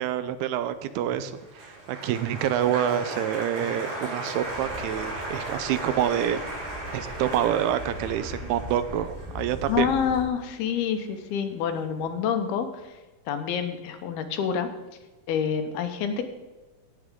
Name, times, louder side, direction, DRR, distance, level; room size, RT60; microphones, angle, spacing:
voice 1, 0.0-6.4 6.9-9.9, right 10 dB, 80° right, 12 dB, 2.5 m, -27 dB
Applause, 1.0-11.4 11.6-12.2, right 1 dB, 65° right, 5.9 m, -37 dB
sound 1, 4.4-10.3, equal, 25° right, 2.4 m, -41 dB
voice 2, 9.7-13.0 13.3-14.7 15.3-16.2, left 7 dB, 75° left, 7 dB, 2.8 m, -27 dB
18.0 x 8.4 x 3.7 m, 1.2 s
omnidirectional pair, 4.6 m